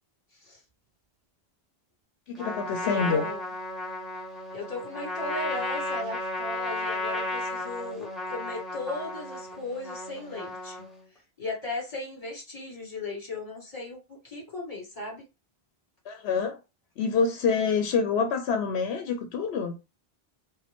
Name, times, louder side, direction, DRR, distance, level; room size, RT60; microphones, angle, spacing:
voice 1, 2.3-3.3 16.1-16.6 17.0-19.8, left 5 dB, 85° left, 0.9 m, -26 dB
Trumpet, 2.4-11.1, left 2 dB, ahead, 1.0 m, -34 dB
voice 2, 2.8-3.4 4.5-10.9 11.4-15.2, left 2 dB, 35° left, 2.2 m, -37 dB
4.9 x 2.3 x 3.5 m
omnidirectional pair, 1.0 m